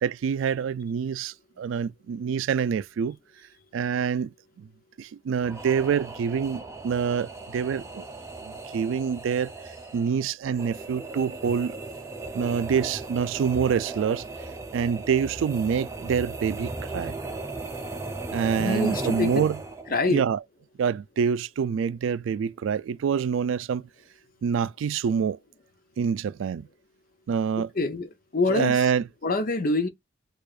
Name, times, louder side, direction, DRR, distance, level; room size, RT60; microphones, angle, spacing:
voice 1, 0.0-3.2 3.7-4.3 4.6-4.7 5.0-8.0 8.4-9.5 9.9-11.7 12.3-14.2 14.7-17.2 18.3-19.6 20.1-20.4 20.8-23.9 24.4-25.4 26.0-26.7 27.3-27.7 28.5-29.0, right 7 dB, 85° right, 0.3 m, -26 dB
sound 1, 5.4-20.0, right 3 dB, 15° right, 0.6 m, -37 dB
voice 2, 18.6-19.3 19.9-20.2 27.8-28.9 29.2-29.9, left 3 dB, 45° left, 0.7 m, -25 dB
4.7 x 2.4 x 2.4 m
head